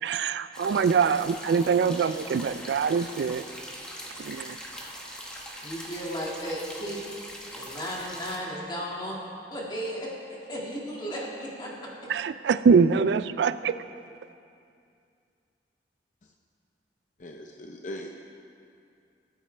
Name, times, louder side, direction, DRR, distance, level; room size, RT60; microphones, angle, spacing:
voice 1, 0.0-3.4 4.2-4.6 12.1-13.7, right 5 dB, 75° right, 14 dB, 0.3 m, -24 dB
sound 1, 0.5-8.4, equal, 5° left, 1.2 m, -41 dB
voice 2, 5.6-7.0 7.5-9.2 9.5-12.1, equal, 25° left, -4 dB, 2.0 m, -35 dB
voice 3, 17.2-18.1, left 1 dB, 45° left, 3 dB, 0.6 m, -39 dB
18.5 x 8.5 x 3.3 m, 2.4 s
head